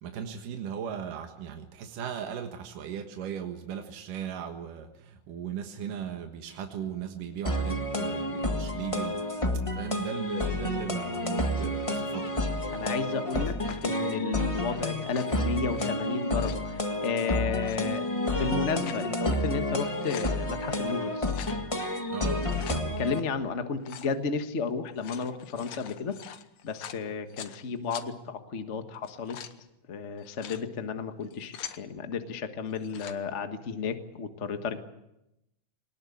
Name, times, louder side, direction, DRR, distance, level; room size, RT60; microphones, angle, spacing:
voice 1, 0.0-12.4 13.3-13.5 22.1-22.5, right 8 dB, 80° right, 4 dB, 3.1 m, -37 dB
sound 1, 7.4-23.2, left 1 dB, 20° left, 0.8 m, -30 dB
voice 2, 12.7-13.6 13.8-21.4 22.7-26.1 26.6-29.4 29.9-34.8, left 5 dB, 50° left, 7 dB, 0.8 m, -33 dB
sound 2, 13.6-14.0 15.0-15.9 16.2-16.7 17.5-17.8 18.5-19.1 19.5-19.6 19.8-20.4 21.2-21.6 22.3-22.8 23.8-24.1 24.8-27.6 27.9-28.1 28.9-29.6 30.2-30.6 31.2-31.8 32.7-33.2, left 10 dB, 65° left, 2.1 m, -44 dB
22.0 x 20.0 x 8.5 m, 0.87 s
omnidirectional pair, 3.7 m